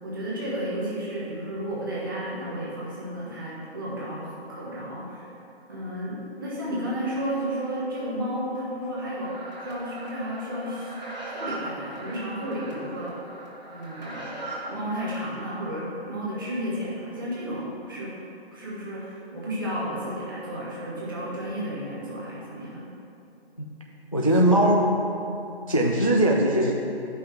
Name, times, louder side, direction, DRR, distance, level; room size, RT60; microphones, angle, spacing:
voice 1, 0.0-5.3 5.7-9.3 9.6-10.9 11.3-13.1 13.7-14.3 14.6-18.1 18.5-22.9, equal, 20° right, -7 dB, 1.2 m, -32 dB
sound 1, 9.2-15.2, right 1 dB, 40° right, 1.7 m, -39 dB
voice 2, 24.1-24.9 25.7-26.7, right 1 dB, 35° left, -1 dB, 0.4 m, -20 dB
10.0 x 5.6 x 3.3 m, 2.8 s
figure-of-eight pair, 170°, 32 cm